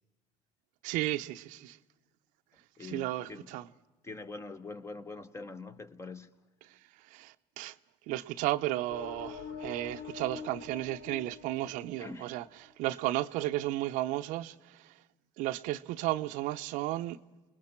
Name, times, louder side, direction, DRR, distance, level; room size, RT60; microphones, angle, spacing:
voice 1, 0.8-1.8 2.8-3.6 7.1-7.8 8.1-12.5 12.8-14.9 15.4-17.2, right 16 dB, 70° right, 0.7 m, -34 dB
voice 2, 2.8-3.5 4.0-6.3 11.6-11.7 12.0-12.3, left 3 dB, 20° left, 1.1 m, -44 dB
sound 1, 8.9-12.5, left 6 dB, 80° left, 2.8 m, -45 dB
28.5 x 20.5 x 4.5 m
supercardioid pair, 110°, 14 cm